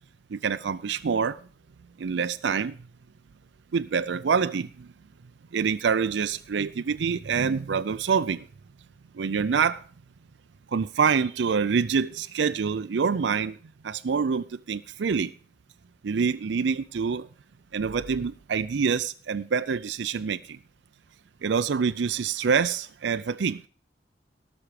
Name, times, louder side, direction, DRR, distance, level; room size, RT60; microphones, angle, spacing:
voice 1, 0.3-1.4 2.0-2.8 3.7-4.9 5.5-8.5 9.1-9.8 10.7-13.6 13.8-15.3 16.0-17.3 17.7-20.6 21.4-23.6, right 6 dB, 75° right, 0.4 m, -26 dB
18.0 x 6.0 x 5.0 m
head